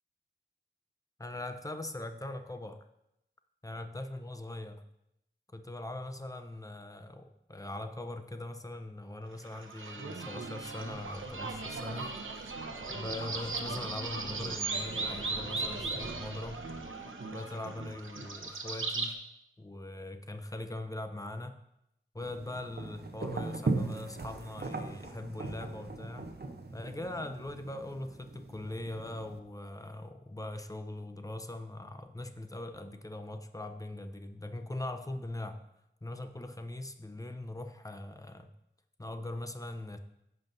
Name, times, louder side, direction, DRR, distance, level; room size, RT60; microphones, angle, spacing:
voice 1, 1.2-2.9 3.6-4.8 5.5-12.1 12.9-16.6 17.3-19.2 19.6-21.6 22.1-26.3 26.7-35.6 36.0-38.5 39.0-40.0, left 1 dB, 15° left, 7 dB, 0.7 m, -41 dB
sound 1, 9.4-19.1, right 3 dB, 85° right, 0.8 m, -37 dB
sound 2, 22.2-29.4, right 3 dB, 55° right, 0.8 m, -38 dB
14.5 x 5.6 x 2.7 m, 0.83 s
wide cardioid pair, 70°, 20 cm